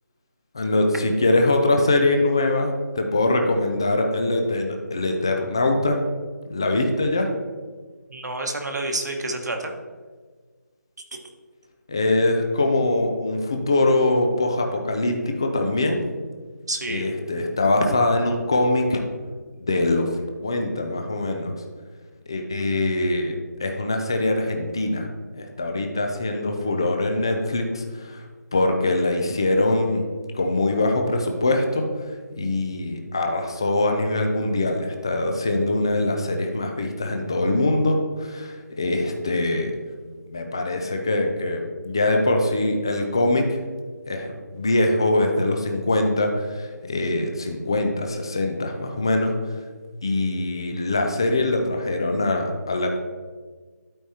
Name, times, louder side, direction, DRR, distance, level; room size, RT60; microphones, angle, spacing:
voice 1, 0.5-6.0 6.5-7.3 11.9-16.0 16.9-19.0 19.6-21.5 22.3-25.1 25.3-28.2 28.5-30.1 30.3-31.9 32.4-39.7 40.3-43.6 44.1-49.6 50.0-53.0, left 2 dB, 15° left, 3 dB, 0.4 m, -23 dB
voice 2, 8.1-9.7 11.9-12.0 16.7-17.1, right 2 dB, 65° right, 3 dB, 1.3 m, -29 dB
12.0 x 4.7 x 2.8 m, 1.5 s
figure-of-eight pair, 175°, 10 cm